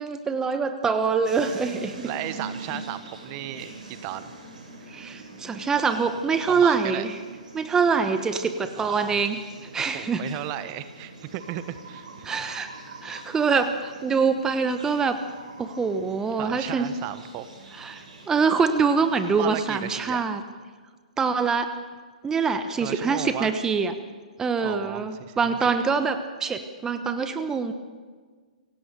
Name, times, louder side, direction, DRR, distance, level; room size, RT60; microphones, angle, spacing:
voice 1, 0.0-2.1 4.9-7.2 7.5-9.4 9.7-10.2 12.2-12.7 13.0-15.2 15.6-16.9 17.8-20.4 21.2-21.7 22.2-23.9 24.4-27.7, right 5 dB, 15° right, 10 dB, 1.1 m, -24 dB
sound 1, 1.2-19.8, right 3 dB, 65° right, 6.5 m, -44 dB
voice 2, 2.0-4.3 6.5-7.1 8.8-9.2 9.8-12.3 16.4-17.5 19.4-20.2 22.8-23.6 24.6-25.6, right 12 dB, 35° right, 13 dB, 1.2 m, -35 dB
25.5 x 17.0 x 6.8 m, 1.5 s
figure-of-eight pair, 125°, 4 cm